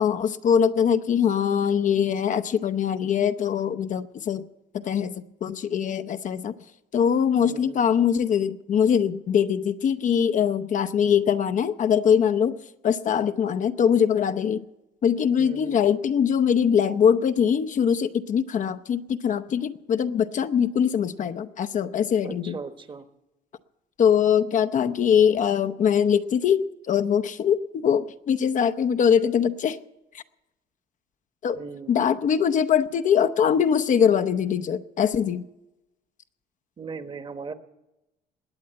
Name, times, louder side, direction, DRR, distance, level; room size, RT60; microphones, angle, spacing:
voice 1, 0.0-4.5 4.7-6.5 6.9-12.6 12.8-14.6 15.0-22.6 24.0-29.8 30.1-30.2 31.4-31.6 31.9-35.4, left 8 dB, 50° left, 11 dB, 0.7 m, -22 dB
voice 2, 7.4-7.8 15.4-15.8 22.2-23.1 31.5-31.9 36.8-37.5, right 5 dB, 30° right, 10 dB, 1.2 m, -38 dB
20.5 x 8.6 x 7.6 m, 0.95 s
cardioid pair, 110°, 17 cm